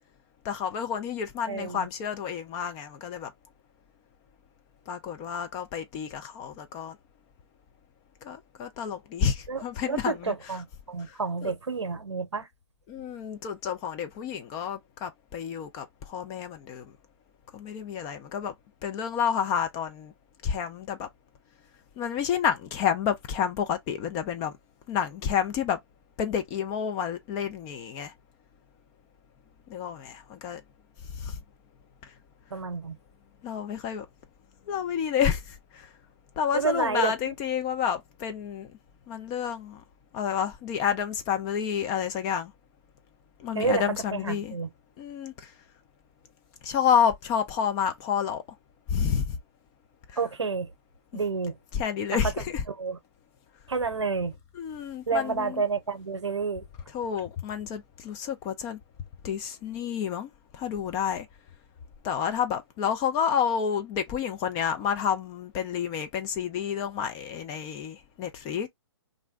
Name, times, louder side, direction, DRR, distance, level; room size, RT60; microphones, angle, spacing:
voice 1, 0.4-3.3 4.9-7.0 8.2-10.3 11.1-11.2 11.4-11.5 12.9-16.9 17.5-18.5 18.8-20.1 20.4-21.1 22.0-24.5 24.9-25.8 26.2-28.1 29.7-30.6 31.1-31.4 33.4-34.1 34.7-35.9 36.4-38.7 39.1-39.8 40.1-42.5 43.4-44.5 45.0-45.5 46.6-48.4 48.9-49.3 51.7-52.6 54.6-55.6 56.9-58.8 59.2-61.3 62.0-68.7, left 8 dB, 25° left, 0.5 m, -29 dB
voice 2, 1.5-1.9 9.5-12.5 32.5-33.0 36.5-37.3 43.5-43.8 44.1-44.7 50.2-50.7 51.1-51.5 52.7-53.0 53.7-54.4 55.1-56.6, right 4 dB, 85° right, 0.7 m, -29 dB
2.5 x 2.1 x 3.5 m
figure-of-eight pair, 130°, 14 cm